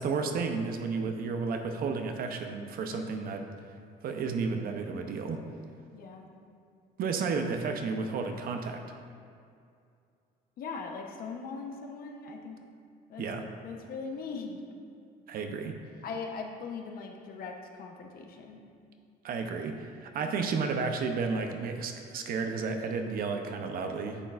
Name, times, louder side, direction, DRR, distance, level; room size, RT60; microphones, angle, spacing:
voice 1, 0.0-3.4 4.0-5.4 7.0-8.8 13.2-13.5 15.3-15.8 19.2-24.2, right 4 dB, 60° right, 5 dB, 0.8 m, -32 dB
voice 2, 5.9-6.3 10.6-12.6 13.1-14.6 16.0-18.6, left 4 dB, 60° left, 2 dB, 1.0 m, -40 dB
9.8 x 7.0 x 2.5 m, 2.4 s
cardioid pair, 110°, 17 cm